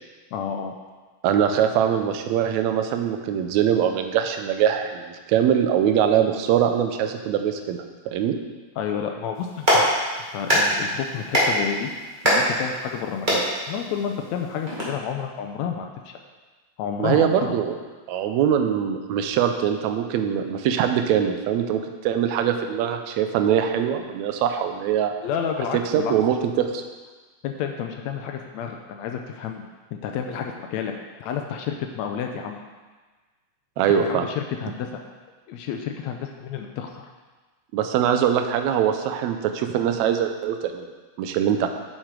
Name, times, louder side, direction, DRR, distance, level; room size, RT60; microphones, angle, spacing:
voice 1, 0.3-0.8 8.8-9.9 10.3-11.9 12.2-16.2 16.8-17.5 25.2-26.1 27.4-29.6 30.0-30.9 31.2-32.6 33.9-35.0 35.5-37.1, left 8 dB, 80° left, 4 dB, 1.6 m, -30 dB
voice 2, 1.2-7.8 8.1-8.4 17.0-17.7 18.1-25.1 25.9-26.8 33.8-34.3 37.7-40.9 41.2-41.7, right 9 dB, 75° right, 6 dB, 1.8 m, -22 dB
Clapping, 9.3-14.8, equal, 20° right, 1.5 m, -24 dB
7.4 x 6.6 x 4.7 m, 1.3 s
omnidirectional pair, 3.6 m